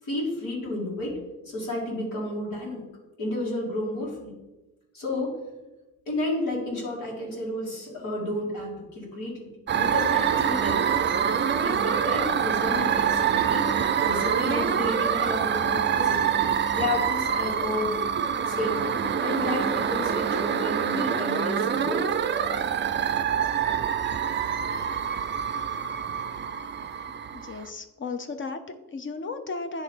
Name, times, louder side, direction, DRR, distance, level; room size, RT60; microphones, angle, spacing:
voice 1, 0.0-1.2 1.4-2.9 3.2-4.3 4.9-5.3 6.1-10.9 11.6-13.7 14.0-16.3 16.7-18.0 18.5-22.1, left 1 dB, 85° left, -5 dB, 2.4 m, -31 dB
sound 1, 9.7-27.7, right 8 dB, 35° right, 0.4 m, -26 dB
voice 2, 27.3-29.8, left 4 dB, 40° left, 8 dB, 0.6 m, -35 dB
9.6 x 3.2 x 4.4 m, 1.0 s
cardioid pair, 85°, 32 cm